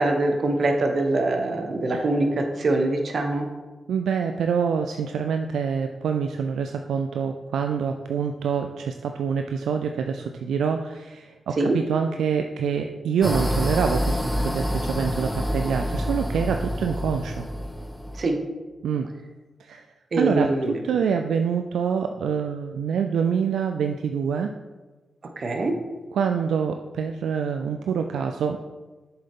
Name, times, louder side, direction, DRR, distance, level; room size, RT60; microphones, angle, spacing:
voice 1, 0.0-3.5 11.6-11.7 18.2-18.3 20.1-20.8 25.4-25.7, right 2 dB, 60° right, 4 dB, 1.2 m, -23 dB
voice 2, 3.9-17.4 18.8-19.1 19.6-19.9 20.2-24.5 26.1-28.6, right 6 dB, 90° right, 5 dB, 0.3 m, -26 dB
sound 1, 13.2-18.2, equal, 5° left, 1.2 m, -27 dB
7.4 x 6.9 x 3.7 m, 1.3 s
cardioid pair, 50°, 0 cm